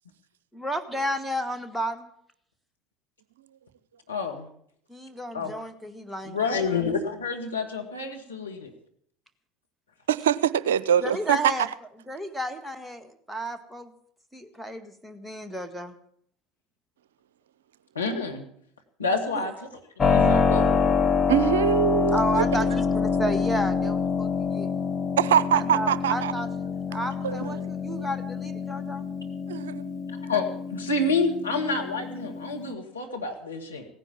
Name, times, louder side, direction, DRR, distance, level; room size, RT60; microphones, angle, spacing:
voice 1, 0.5-2.1 4.9-6.4 11.0-11.7 12.1-13.9 14.3-15.9 19.3-19.5 22.1-24.7 25.5-29.1, equal, ahead, 1.8 m, -32 dB
voice 2, 4.1-4.5 5.3-5.5 6.3-8.7 18.0-18.4 19.0-19.7 20.1-20.7 25.7-25.8 30.2-33.9, left 3 dB, 85° left, 2.0 m, -28 dB
voice 3, 10.1-11.5 21.3-22.5 25.2-26.3 27.2-27.4 29.5-30.0, right 9 dB, 70° right, 0.5 m, -23 dB
Keyboard (musical), 20.0-32.7, left 5 dB, 30° left, 1.1 m, -26 dB
17.0 x 9.9 x 7.4 m
figure-of-eight pair, 70°, 0 cm